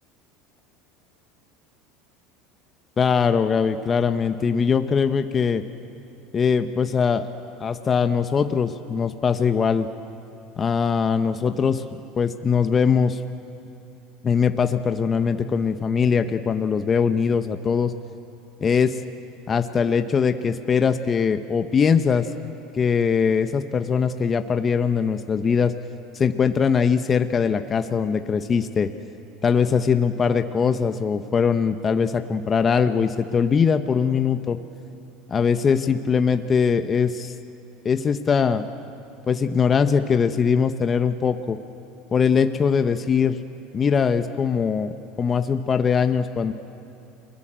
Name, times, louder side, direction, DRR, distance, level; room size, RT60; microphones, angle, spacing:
voice 1, 3.0-5.6 6.3-7.3 7.6-9.9 10.6-11.8 12.2-13.2 14.2-17.9 18.6-19.0 19.5-25.7 26.1-28.9 29.4-34.6 35.3-37.3 37.8-38.6 39.3-41.6 42.1-43.4 43.7-44.9 45.2-46.5, left 6 dB, 30° left, 8 dB, 1.3 m, -21 dB
30.0 x 21.5 x 7.7 m, 2.8 s
hypercardioid pair, 85°, 0 cm